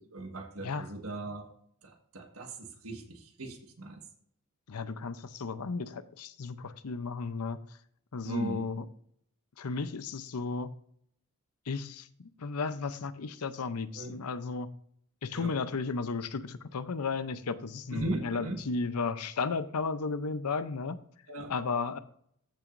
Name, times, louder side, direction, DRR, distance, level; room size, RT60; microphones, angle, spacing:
voice 1, 0.1-1.5 1.8-4.0 8.2-8.7 13.9-14.2 15.3-15.6 17.9-18.6 21.3-21.5, right 2 dB, 65° right, 1.6 m, -38 dB
voice 2, 4.7-7.6 8.1-8.9 9.6-10.7 11.7-14.7 15.2-21.0 21.5-22.0, left 4 dB, 85° left, 0.7 m, -34 dB
14.0 x 6.1 x 2.6 m
head